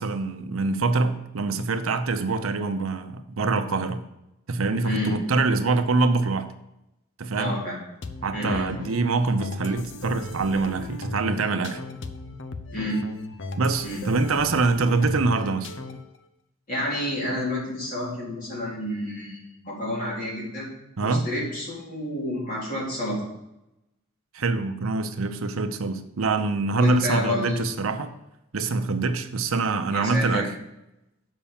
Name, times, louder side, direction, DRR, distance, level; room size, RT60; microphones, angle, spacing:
voice 1, 0.0-4.0 4.5-6.5 7.2-7.6 8.2-11.8 13.6-15.7 21.0-21.3 24.3-28.1 28.5-30.5, right 3 dB, 85° right, 8 dB, 0.7 m, -25 dB
voice 2, 4.8-5.2 7.4-7.8 8.3-8.7 12.7-13.0 13.8-14.0 16.7-20.7 21.0-23.2 26.7-27.6 29.9-30.5, left 1 dB, 40° left, -6 dB, 4.0 m, -29 dB
sound 1, 8.0-16.2, left 2 dB, 60° left, 0.7 m, -37 dB
7.1 x 5.4 x 7.2 m, 0.89 s
head